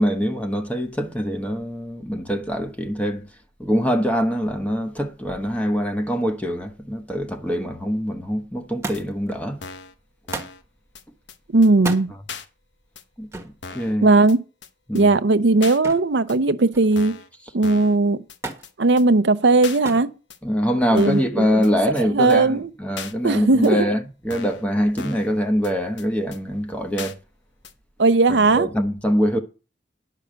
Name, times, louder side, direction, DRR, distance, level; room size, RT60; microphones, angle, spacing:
voice 1, 0.0-3.2 3.6-9.6 13.2-14.1 14.9-15.1 20.4-27.2 28.3-29.4, equal, 10° left, 1.1 m, -24 dB
Thump thud, 8.8-9.3 10.3-10.6 11.7-12.1 13.3-13.6 15.8-16.2 16.5-17.1 18.4-18.7 19.8-20.1 21.1-21.5 22.5-22.6, right 3 dB, 15° right, 1.4 m, -33 dB
sound 1, 8.9-9.0 9.6-9.9 10.3-10.6 10.9-11.0 11.3-11.4 11.6-11.7 12.3-12.4 12.9-13.0 13.6-13.9 14.3-14.4 14.6-14.7 14.9-15.0 15.6-15.8 16.3-16.4 16.9-17.3 17.6-18.0 18.3-18.4 18.6-18.7 19.0-19.1 19.6-19.8 20.3-20.4 21.0-21.3 21.6-21.7 22.0-22.1 22.3-22.4 23.0-23.1 23.6-23.7 24.3-24.6 25.0-25.3 25.6-25.7 26.0-26.1 26.3-26.4 27.0-27.1 27.6-27.7, left 5 dB, 75° left, 1.2 m, -37 dB
voice 2, 11.5-12.1 14.0-14.4 14.9-17.2 17.5-18.2 18.8-20.1 20.9-21.5 22.1-22.7 23.2-23.9 28.0-28.7, right 3 dB, 70° right, 0.7 m, -17 dB
10.5 x 6.5 x 6.4 m
head